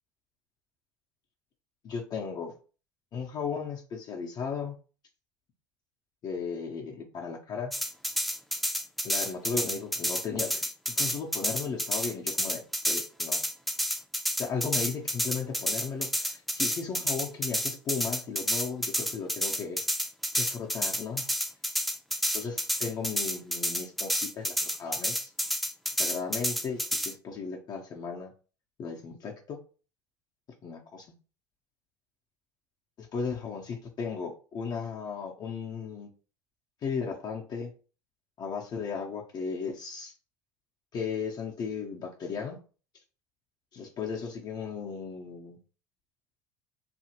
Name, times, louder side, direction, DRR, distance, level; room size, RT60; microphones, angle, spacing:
voice 1, 1.8-2.5 3.1-4.7 6.2-7.7 9.0-13.4 14.4-19.8 20.3-21.3 22.3-25.3 26.0-28.3 28.8-29.6 30.6-31.1 33.0-36.1 36.8-37.7 38.4-40.1 40.9-42.6 43.7-45.6, left 5 dB, 45° left, 0 dB, 0.6 m, -36 dB
sound 1, 7.7-27.1, equal, ahead, 0.4 m, -30 dB
2.8 x 2.4 x 2.8 m, 0.36 s
hypercardioid pair, 80°, 10 cm